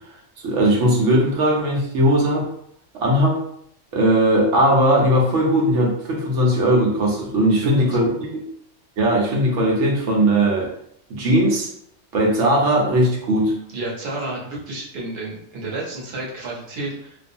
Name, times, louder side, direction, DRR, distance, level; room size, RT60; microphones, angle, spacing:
voice 1, 0.4-2.5 2.9-3.4 3.9-8.4 9.0-10.7 11.1-11.7 12.1-13.5, right 1 dB, 90° right, -2 dB, 1.0 m, -18 dB
voice 2, 13.7-17.2, right 2 dB, 60° right, -4 dB, 1.0 m, -31 dB
2.6 x 2.3 x 2.6 m, 0.68 s
omnidirectional pair, 1.2 m